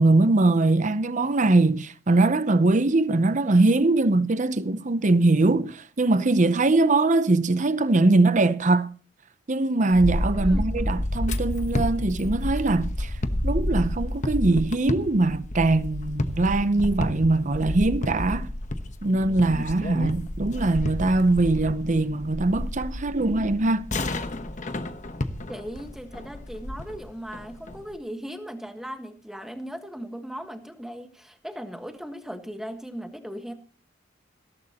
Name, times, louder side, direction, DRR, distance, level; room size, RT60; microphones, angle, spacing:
voice 1, 0.0-8.9 9.5-13.1 13.4-18.5 19.0-23.8, right 2 dB, 40° right, 0.7 m, -22 dB
sound 1, 9.9-27.9, left 1 dB, 40° left, 1.1 m, -30 dB
voice 2, 10.4-10.7 25.5-33.5, equal, ahead, 1.5 m, -38 dB
16.5 x 14.0 x 3.0 m
head